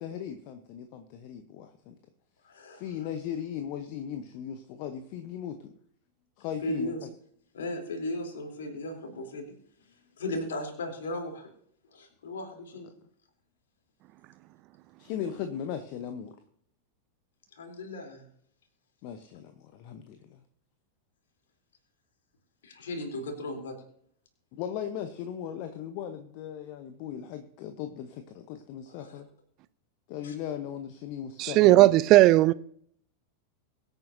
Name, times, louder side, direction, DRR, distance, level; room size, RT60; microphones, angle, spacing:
voice 1, 0.0-2.0 2.7-5.7 6.4-7.1 15.0-16.3 19.0-20.4 24.5-29.3 30.1-31.9, left 9 dB, 45° left, 1.0 m, -38 dB
voice 2, 2.5-2.8 6.6-7.0 7.5-9.5 10.2-11.5 11.9-12.9 17.6-18.2 22.6-23.8 28.9-29.2 30.2-30.3, left 1 dB, 65° left, 3.5 m, -36 dB
voice 3, 31.4-32.5, right 16 dB, 40° right, 0.4 m, -17 dB
23.0 x 9.1 x 2.8 m
figure-of-eight pair, 90°, 0 cm